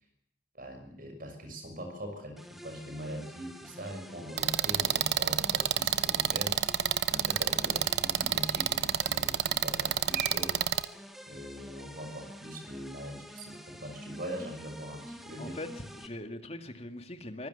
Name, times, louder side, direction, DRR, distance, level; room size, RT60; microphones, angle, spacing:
voice 1, 0.5-6.6 7.1-10.8 11.3-15.6, right 1 dB, 50° right, 7 dB, 6.3 m, -42 dB
sound 1, 2.4-16.1, equal, ahead, 2.1 m, -48 dB
sound 2, 4.4-10.8, right 8 dB, 70° right, 0.9 m, -28 dB
voice 2, 15.4-17.5, left 1 dB, 35° left, 7 dB, 2.2 m, -41 dB
24.0 x 16.0 x 8.1 m, 0.69 s
head